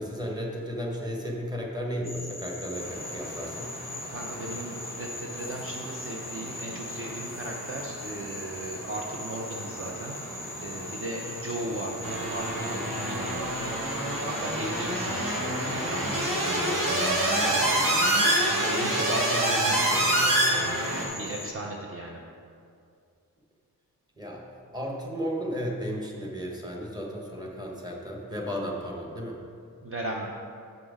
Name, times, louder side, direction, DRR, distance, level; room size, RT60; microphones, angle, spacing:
voice 1, 0.0-3.7 24.2-24.4 24.7-29.4, equal, 10° right, -1 dB, 1.1 m, -34 dB
Frog, 2.0-21.5, left 2 dB, 10° left, 0.5 m, -41 dB
sound 1, 2.7-18.8, equal, 55° right, 1.8 m, -42 dB
voice 2, 4.1-10.2 10.6-13.5 14.1-17.9 18.4-20.3 20.6-22.2 29.8-30.3, right 2 dB, 40° right, -1 dB, 0.6 m, -37 dB
sound 2, 12.0-21.1, right 1 dB, 70° right, 1.7 m, -26 dB
7.9 x 5.9 x 5.0 m, 2.3 s
wide cardioid pair, 160°, 35 cm